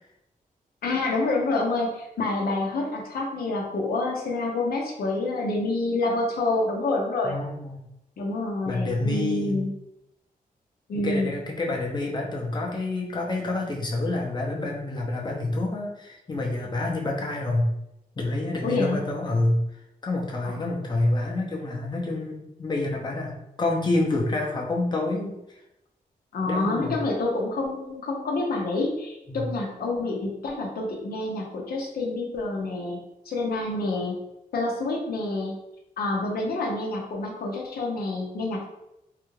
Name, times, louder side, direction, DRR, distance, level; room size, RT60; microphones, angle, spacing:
voice 1, 0.8-7.4 8.2-9.7 10.9-11.3 18.6-19.0 20.4-20.7 26.3-33.0 33.3-34.2 34.5-35.6 36.0-38.6, left 2 dB, 90° left, -1 dB, 0.7 m, -27 dB
voice 2, 7.2-7.8 8.7-9.6 11.0-17.7 18.2-19.6 20.0-25.4 26.5-27.0 29.3-29.5, left 2 dB, 30° left, -1 dB, 0.7 m, -28 dB
3.3 x 2.4 x 3.1 m, 0.86 s
wide cardioid pair, 95°, 15 cm